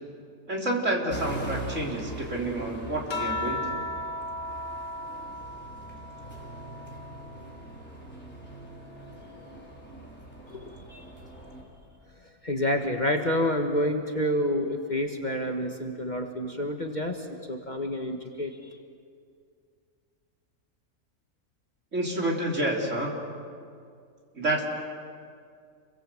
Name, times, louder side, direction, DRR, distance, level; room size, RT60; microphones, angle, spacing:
voice 1, 0.5-3.8 21.9-23.2 24.3-24.6, right 1 dB, 50° right, -1 dB, 4.0 m, -29 dB
sound 1, 1.1-11.6, right 2 dB, 5° left, 4.9 m, -41 dB
sound 2, 3.1-7.9 8.4-10.1 11.3-11.8, left 1 dB, 70° left, 2.2 m, -38 dB
voice 2, 10.5-11.0 12.4-18.6, left 1 dB, 30° left, 3 dB, 1.6 m, -28 dB
28.5 x 23.0 x 7.8 m, 2.2 s
omnidirectional pair, 1.6 m